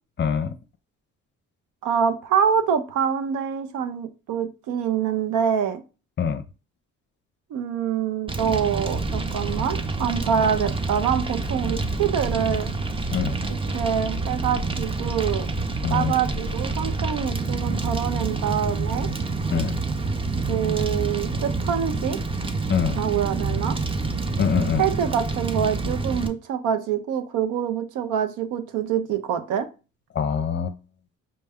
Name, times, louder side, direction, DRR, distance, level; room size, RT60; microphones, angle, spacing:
voice 1, 0.2-0.5 6.2-6.4 13.1-13.4 15.8-16.1 19.5-19.8 22.7-23.0 24.4-24.9 30.1-30.8, left 7 dB, 40° left, 0.5 m, -24 dB
voice 2, 1.8-5.8 7.5-12.7 13.7-15.5 15.9-19.1 20.5-22.2 23.0-23.8 24.8-29.7, right 8 dB, 90° right, 0.7 m, -25 dB
Fire, 8.3-26.3, right 3 dB, 20° right, 0.5 m, -27 dB
5.4 x 2.2 x 3.5 m
cardioid pair, 90°, 30 cm